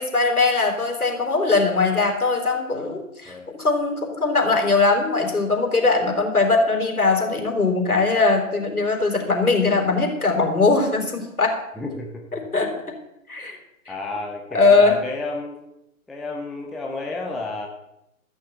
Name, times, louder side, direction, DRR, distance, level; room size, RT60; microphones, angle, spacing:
voice 1, 0.0-11.6 12.3-12.7 13.3-13.6 13.9-14.0 14.5-15.0, left 3 dB, 85° left, 2 dB, 4.3 m, -20 dB
voice 2, 11.8-12.3 13.9-15.6 16.1-17.7, left 3 dB, ahead, 0 dB, 0.4 m, -31 dB
14.5 x 6.6 x 8.3 m, 0.86 s
figure-of-eight pair, 140°, 43 cm